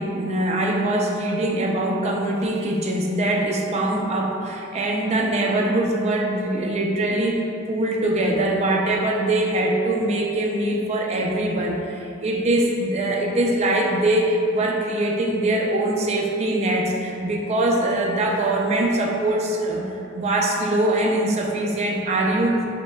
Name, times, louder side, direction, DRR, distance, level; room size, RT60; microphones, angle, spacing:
voice 1, 0.0-22.7, right 1 dB, 30° right, -1 dB, 0.4 m, -22 dB
5.8 x 2.1 x 2.3 m, 2.7 s
head